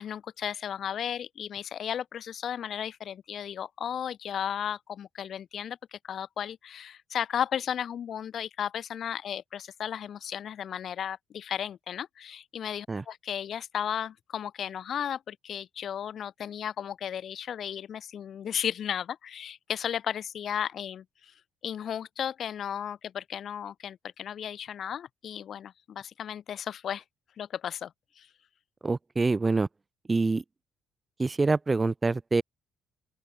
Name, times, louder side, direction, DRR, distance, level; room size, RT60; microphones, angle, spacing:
voice 1, 0.0-21.3 21.6-27.0 27.4-28.3, left 9 dB, 55° left, 2.1 m, -34 dB
voice 2, 28.8-29.7 30.1-30.4 31.2-32.4, right 3 dB, 25° right, 1.3 m, -25 dB
open air
cardioid pair, 85°, 0 cm